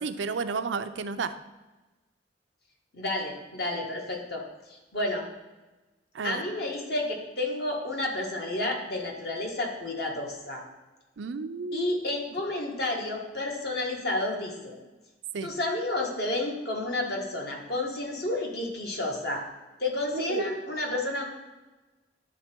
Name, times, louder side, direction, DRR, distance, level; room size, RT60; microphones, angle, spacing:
voice 1, 0.0-1.3 6.1-6.4 11.2-11.9 15.3-15.5 20.1-20.4, right 4 dB, 85° right, 10 dB, 0.5 m, -32 dB
voice 2, 2.9-4.4 4.7-5.3 6.2-10.6 11.7-14.8 15.4-19.4 19.8-21.2, left 2 dB, 60° left, 0 dB, 1.5 m, -31 dB
11.0 x 3.9 x 4.5 m, 1.1 s
head